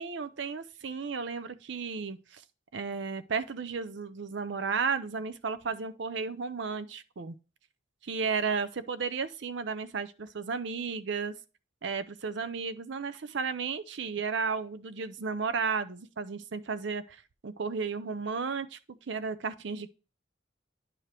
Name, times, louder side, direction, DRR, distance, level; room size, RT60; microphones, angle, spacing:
voice 1, 0.0-2.4 2.7-7.4 8.0-11.3 11.8-18.8 19.1-19.9, right 5 dB, 65° right, 0.6 m, -33 dB
10.5 x 4.9 x 2.9 m
head